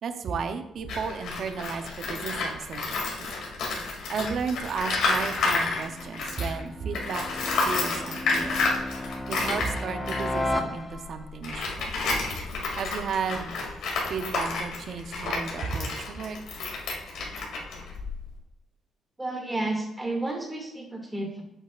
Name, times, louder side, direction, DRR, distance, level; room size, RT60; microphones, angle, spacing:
voice 1, 0.0-2.9 3.2-3.3 4.1-7.2 7.6-8.6 9.3-12.0 12.8-13.5 14.1-16.4, right 5 dB, 60° right, 8 dB, 0.7 m, -33 dB
Tools, 0.8-6.6 6.9-18.4, left 3 dB, 80° left, 2.4 m, -30 dB
sound 1, 5.0-11.3, left 1 dB, 10° left, 0.9 m, -35 dB
voice 2, 19.2-21.4, right 2 dB, 10° right, 1 dB, 2.2 m, -31 dB
8.1 x 7.4 x 2.5 m, 0.88 s
cardioid pair, 90°, 0 cm